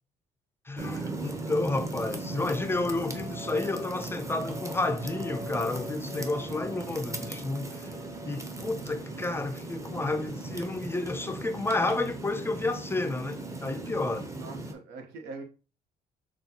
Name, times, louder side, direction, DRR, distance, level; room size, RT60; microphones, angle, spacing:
voice 1, 0.7-7.9 8.3-14.3, left 2 dB, 15° left, 0.4 m, -31 dB
sound 1, 0.8-14.7, right 2 dB, 20° right, 0.7 m, -37 dB
sound 2, 5.2-10.7, right 3 dB, 40° right, 1.0 m, -53 dB
voice 2, 14.4-15.4, right 3 dB, 90° right, 1.0 m, -42 dB
6.2 x 2.3 x 2.8 m
cardioid pair, 110°, 17 cm